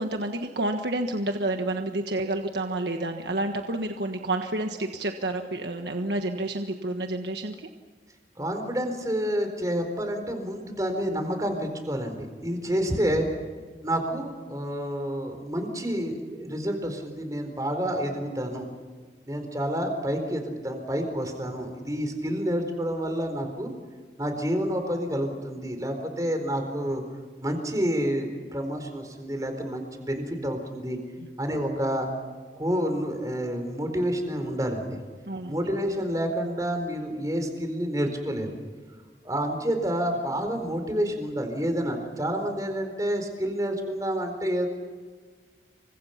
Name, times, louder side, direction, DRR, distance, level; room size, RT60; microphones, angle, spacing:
voice 1, 0.0-7.7 35.3-35.6, right 2 dB, 80° right, 4 dB, 1.4 m, -29 dB
voice 2, 8.4-13.3 13.8-18.7 19.3-23.7 24.2-27.0 27.4-31.0 31.4-32.1 32.6-35.0 35.5-38.6 39.2-44.7, equal, 20° right, 6 dB, 4.3 m, -29 dB
29.0 x 25.0 x 5.9 m, 1.5 s
head